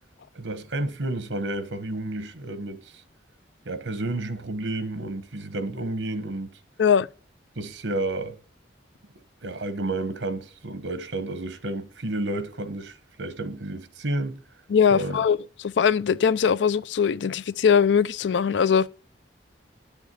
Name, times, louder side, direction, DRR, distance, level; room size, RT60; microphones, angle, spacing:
voice 1, 0.3-3.0 3.6-6.5 7.6-8.4 9.4-14.4 14.9-15.2, right 2 dB, 85° right, 1.2 m, -31 dB
voice 2, 14.7-15.4 15.6-18.9, left 7 dB, 75° left, 0.4 m, -21 dB
9.6 x 7.2 x 6.9 m
head